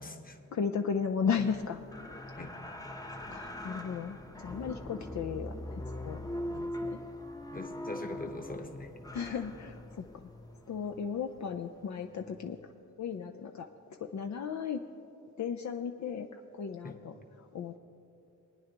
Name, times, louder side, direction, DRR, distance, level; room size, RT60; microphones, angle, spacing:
voice 1, 0.0-0.4 2.4-2.5 7.5-8.9 9.2-9.4 16.8-17.0, left 2 dB, 25° left, 4 dB, 1.1 m, -42 dB
voice 2, 0.5-1.8 3.3-6.2 6.5-7.0 8.3-8.4 9.1-10.1 10.7-12.7 13.0-13.7 14.0-14.8 15.4-17.8, left 6 dB, 60° left, 5 dB, 0.5 m, -35 dB
sound 1, 1.4-12.7 13.1-13.2, left 1 dB, 10° left, 0.8 m, -42 dB
21.0 x 9.5 x 3.0 m, 2.8 s
cardioid pair, 65°, 31 cm